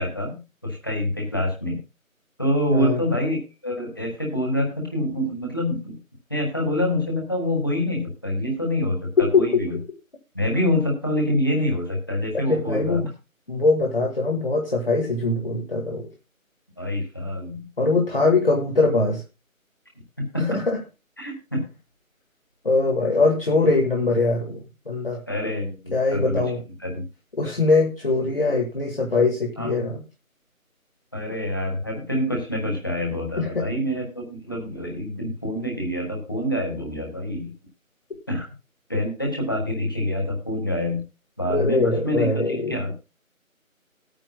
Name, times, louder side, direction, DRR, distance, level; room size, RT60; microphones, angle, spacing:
voice 1, 0.0-1.8 2.4-6.0 6.3-9.1 9.3-9.8 10.3-13.1 16.8-17.6 20.3-20.6 21.2-21.6 25.3-26.4 26.8-27.0 29.6-29.7 31.1-37.5 38.3-38.5 38.9-41.0 41.4-42.4 42.7-42.9, left 1 dB, 15° left, -1 dB, 1.6 m, -26 dB
voice 2, 12.5-13.0 13.5-16.1 17.8-19.2 20.4-20.8 22.6-25.2 25.9-26.6 27.4-30.0 33.4-33.6 41.5-42.7, left 3 dB, 40° left, -1 dB, 1.9 m, -22 dB
18.5 x 9.0 x 2.3 m, 0.28 s
figure-of-eight pair, 175°, 42 cm